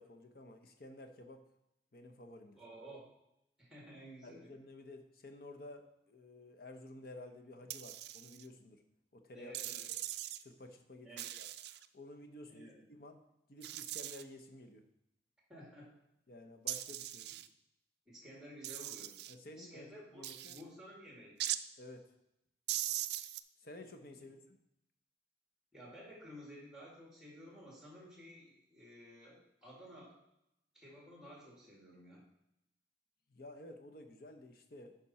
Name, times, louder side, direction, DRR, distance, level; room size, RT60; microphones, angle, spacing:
voice 1, 0.0-1.4 1.9-2.6 4.2-8.8 9.1-9.7 10.4-11.1 11.4-11.5 11.9-13.2 13.5-14.8 16.3-17.3 19.3-20.6 21.8-22.1 23.6-24.6 33.3-35.0, left 1 dB, 50° left, 6 dB, 0.9 m, -52 dB
voice 2, 2.5-3.1 3.6-4.5 9.3-9.9 11.0-11.3 12.5-12.9 15.5-15.9 18.1-19.2 19.5-21.6 25.7-30.2 30.7-32.2, equal, 5° right, -3 dB, 2.3 m, -53 dB
sound 1, 7.7-8.5 9.5-10.4 11.2-11.9 13.6-14.2 16.7-17.5 18.6-19.3 20.2-20.6 21.4-21.6 22.7-23.4, right 13 dB, 60° right, 0.3 m, -40 dB
10.0 x 5.2 x 4.3 m, 0.84 s
head